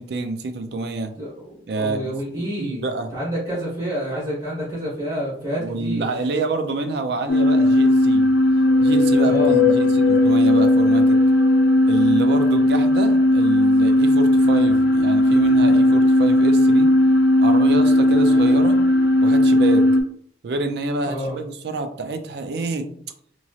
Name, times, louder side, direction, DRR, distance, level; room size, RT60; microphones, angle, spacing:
voice 1, 0.0-1.2 1.7-3.1 5.6-8.3 8.8-11.2 11.9-16.9 17.4-18.8 19.2-20.0 20.4-22.9, right 3 dB, 60° right, 7 dB, 0.4 m, -27 dB
voice 2, 1.2-2.8 3.1-6.0 9.2-9.6 21.0-21.4, equal, 35° right, -7 dB, 1.1 m, -28 dB
sound 1, 7.3-20.0, left 1 dB, 65° left, 0.4 m, -16 dB
3.0 x 2.7 x 2.4 m, 0.62 s
head